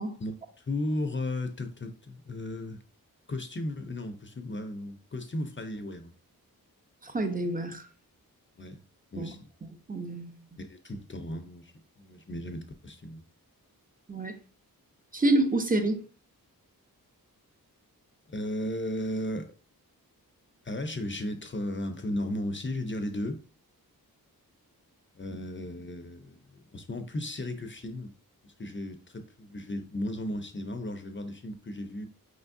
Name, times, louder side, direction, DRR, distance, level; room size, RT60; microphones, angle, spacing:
voice 1, 0.2-2.8 3.3-6.1 8.6-8.8 9.1-9.5 10.6-11.7 12.0-13.2 18.3-19.5 20.6-23.4 25.2-28.1 28.4-32.1, left 1 dB, 30° left, 0.6 m, -35 dB
voice 2, 7.0-7.8 9.2-9.3 9.9-10.4 14.1-14.4 15.1-16.0, right 2 dB, 25° right, 0.8 m, -27 dB
5.0 x 3.5 x 2.6 m
wide cardioid pair, 70°, 37 cm